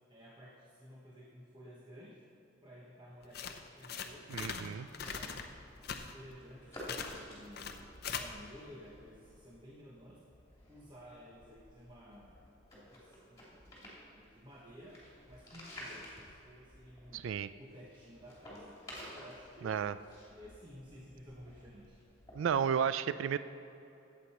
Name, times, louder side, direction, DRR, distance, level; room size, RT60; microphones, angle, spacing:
voice 1, 0.1-2.2 2.6-5.5 5.9-10.2 10.7-12.3 12.7-15.0 15.3-17.3 17.6-18.8 19.1-22.0, equal, 25° right, -4 dB, 1.1 m, -54 dB
sound 1, 3.2-4.7 4.9-5.4 5.8-6.1 6.8-7.2 7.5-8.2, left 7 dB, 50° left, 0.7 m, -40 dB
voice 2, 4.3-4.9 17.1-17.5 19.6-19.9 22.3-23.4, right 7 dB, 80° right, 14 dB, 0.3 m, -32 dB
sound 2, 5.0-22.6, equal, 15° left, 3.0 m, -53 dB
14.5 x 8.3 x 4.3 m, 2.8 s
head